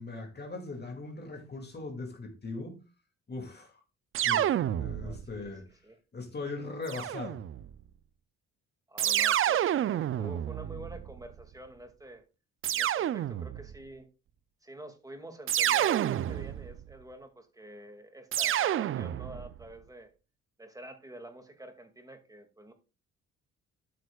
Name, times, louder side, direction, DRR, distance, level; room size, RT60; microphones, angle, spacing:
voice 1, 0.0-2.8 3.3-3.8 4.2-5.7 6.1-7.4, left 3 dB, 35° left, 2.2 m, -40 dB
sound 1, 4.1-5.4 6.9-7.7 9.0-11.3 12.6-13.8 15.5-16.8 18.3-19.5, right 11 dB, 45° right, 0.4 m, -29 dB
voice 2, 4.9-6.0 8.9-12.2 12.7-14.1 14.6-20.1 20.6-22.7, right 1 dB, 10° right, 2.1 m, -48 dB
12.5 x 6.3 x 2.3 m
cardioid pair, 90°, 30 cm